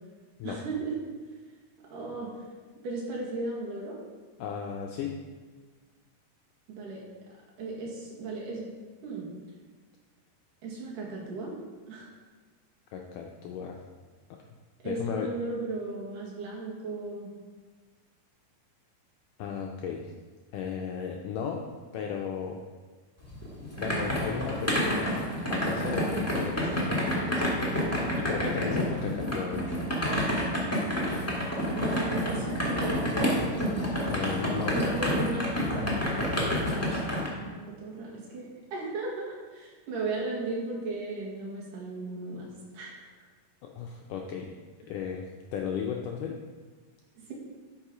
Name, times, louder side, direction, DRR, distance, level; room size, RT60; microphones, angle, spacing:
voice 1, 0.4-1.0 1.9-2.3 2.8-4.0 6.7-7.0 7.6-8.8 9.0-9.3 10.6-11.5 11.9-12.1 14.8-17.3 31.7-33.7 34.7-36.0 36.4-37.1 37.4-42.5 42.7-43.1 47.2-47.3, right 3 dB, 65° right, -3 dB, 3.3 m, -36 dB
voice 2, 4.4-5.2 12.9-13.8 14.8-15.3 19.4-20.1 20.5-21.7 21.9-22.6 23.8-27.5 28.2-29.8 34.1-34.8 43.6-44.5 44.9-45.3 45.5-46.4, left 7 dB, 80° left, 1 dB, 1.9 m, -35 dB
sound 1, 23.3-37.3, equal, 10° left, 0.9 m, -29 dB
12.0 x 5.4 x 5.0 m, 1.4 s
omnidirectional pair, 4.4 m